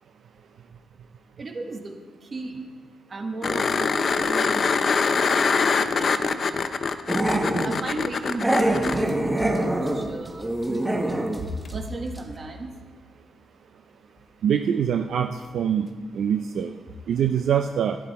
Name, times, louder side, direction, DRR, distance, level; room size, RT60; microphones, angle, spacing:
voice 1, 1.4-2.7 3.1-5.5 5.9-6.4 7.6-12.8 14.0-14.1 16.9-17.0, right 2 dB, 40° right, 4 dB, 1.5 m, -35 dB
sound 1, 3.4-9.0 11.7-11.8, left 5 dB, 50° left, 0.6 m, -24 dB
Growling, 7.1-7.8 8.4-11.4 11.7-11.8 12.2-12.3, right 1 dB, 10° right, 1.3 m, -24 dB
voice 2, 14.4-15.9 16.1-16.7 17.1-18.0, right 8 dB, 70° right, 6 dB, 0.5 m, -24 dB
11.5 x 10.5 x 4.2 m, 1.5 s
cardioid pair, 85°, 0 cm